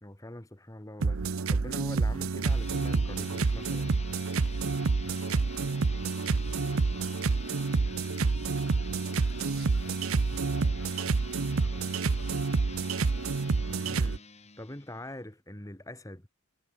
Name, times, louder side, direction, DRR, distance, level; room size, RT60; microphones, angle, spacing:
voice 1, 0.0-4.0 13.8-14.2 14.6-16.3, left 1 dB, 15° left, 2.4 m, -43 dB
sound 1, 1.0-14.2, right 4 dB, 80° right, 0.7 m, -28 dB
sound 2, 2.3-15.1, left 6 dB, 30° left, 3.1 m, -48 dB
voice 2, 4.9-10.0 10.4-13.4, left 2 dB, 70° left, 4.5 m, -56 dB
head